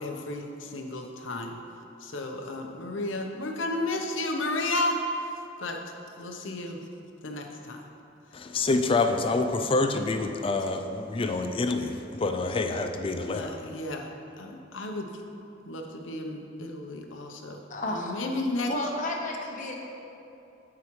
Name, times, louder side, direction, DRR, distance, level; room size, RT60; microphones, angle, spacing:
voice 1, 0.0-1.6 2.0-5.3 5.6-5.8 6.2-6.8 7.2-7.9 13.3-14.1 14.4-15.1 15.6-17.6 17.9-18.7, left 2 dB, 90° left, 3 dB, 0.8 m, -32 dB
voice 2, 8.3-13.7, left 3 dB, 30° left, 6 dB, 0.4 m, -27 dB
voice 3, 17.7-18.1 18.7-19.7, left 1 dB, 45° left, -1 dB, 1.0 m, -32 dB
13.0 x 4.8 x 3.1 m, 2.7 s
head